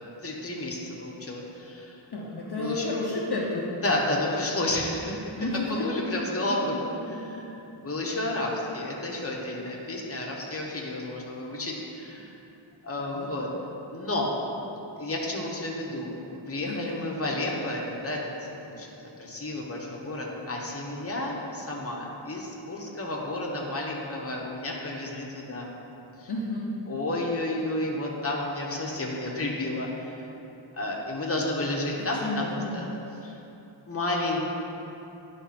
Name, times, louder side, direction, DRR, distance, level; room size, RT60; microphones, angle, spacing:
voice 1, 0.2-2.0 2.6-2.9 3.8-5.2 5.7-6.7 7.1-7.5 7.8-12.3 12.8-13.5 13.9-14.3 15.0-18.2 18.6-25.7 26.2-26.3 26.9-30.2 30.7-32.9 33.2-33.4 33.9-34.4, left 1 dB, 30° left, -2 dB, 1.0 m, -31 dB
voice 2, 2.1-3.6 5.3-5.7 7.3-7.4 8.0-8.2 13.2-13.3 16.7-17.0 26.3-26.7 32.2-32.7, left 2 dB, 50° left, -4 dB, 0.8 m, -31 dB
10.0 x 3.5 x 4.2 m, 2.9 s
wide cardioid pair, 70°, 50 cm